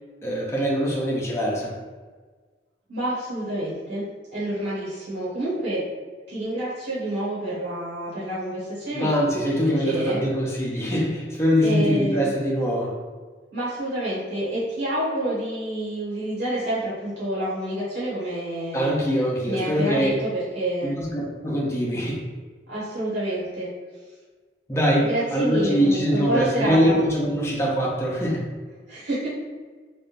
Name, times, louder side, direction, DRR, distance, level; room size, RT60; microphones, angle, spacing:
voice 1, 0.2-1.7 8.9-12.9 18.7-20.1 20.8-22.2 24.7-28.4, equal, 15° left, -4 dB, 0.6 m, -23 dB
voice 2, 2.9-5.9 6.3-10.2 11.6-12.3 13.5-18.9 19.4-20.9 22.7-23.7 25.0-27.0 28.9-29.3, right 1 dB, 75° right, -10 dB, 1.3 m, -28 dB
3.3 x 2.5 x 2.5 m, 1.4 s
head